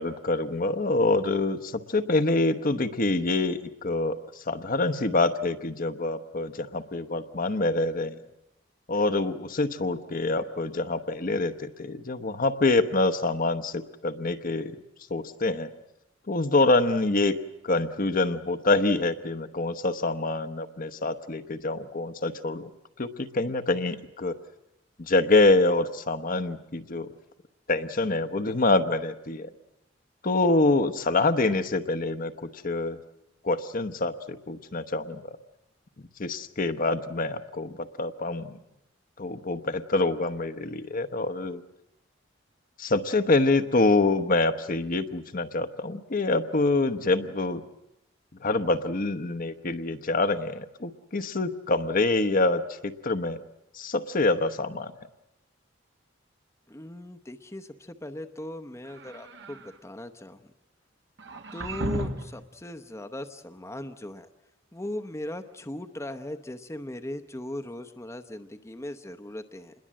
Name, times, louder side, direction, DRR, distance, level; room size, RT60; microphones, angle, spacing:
voice 1, 0.0-4.2 4.5-8.1 8.9-14.8 15.1-15.7 16.3-17.3 17.6-22.7 23.0-24.4 25.0-27.1 27.7-29.5 30.2-32.3 32.6-33.0 33.4-35.2 36.2-38.6 39.2-41.6 42.8-47.6 48.4-53.4 53.7-54.9, left 2 dB, 50° left, 9 dB, 1.0 m, -26 dB
voice 2, 56.7-60.5 61.5-64.3 64.7-69.7, left 1 dB, 15° left, 8 dB, 0.8 m, -38 dB
sound 1, 58.8-59.7 61.2-62.4, right 1 dB, 65° right, 1.6 m, -34 dB
27.0 x 21.5 x 7.6 m, 0.86 s
head